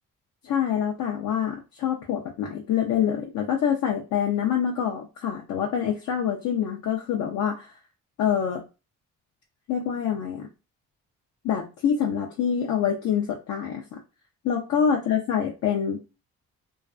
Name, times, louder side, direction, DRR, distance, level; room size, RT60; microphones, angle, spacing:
voice 1, 0.4-7.7 8.2-8.6 9.7-10.5 11.4-13.8 14.5-16.0, left 8 dB, 70° left, 0 dB, 0.6 m, -26 dB
2.4 x 2.3 x 2.3 m, 0.29 s
cardioid pair, 90°, 30 cm